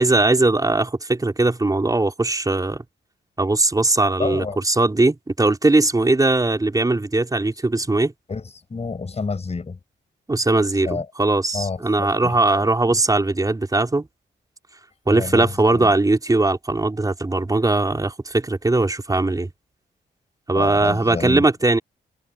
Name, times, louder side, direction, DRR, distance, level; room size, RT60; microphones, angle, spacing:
voice 1, 0.0-2.8 3.4-8.1 10.3-14.1 15.1-19.5 20.5-21.8, right 2 dB, 20° right, 5.1 m, -20 dB
voice 2, 4.2-4.6 8.3-9.8 10.8-11.1 11.5-13.0 15.1-15.9 20.5-21.4, left 4 dB, 35° left, 7.1 m, -29 dB
cardioid pair, 110°, 19 cm